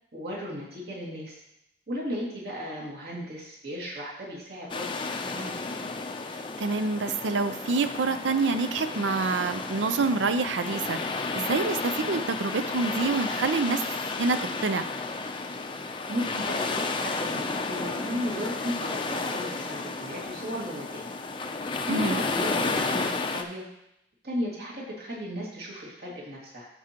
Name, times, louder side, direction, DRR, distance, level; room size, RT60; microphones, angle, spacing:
voice 1, 0.1-1.3 1.9-5.6 16.1-21.0 21.9-23.6 24.2-26.7, equal, 60° right, -5 dB, 2.2 m, -35 dB
sound 1, 4.7-23.4, left 3 dB, 25° left, 0.5 m, -32 dB
voice 2, 6.6-13.8 14.2-14.8 21.9-22.2, right 4 dB, 85° right, 11 dB, 0.5 m, -27 dB
13.5 x 4.8 x 2.9 m, 0.82 s
head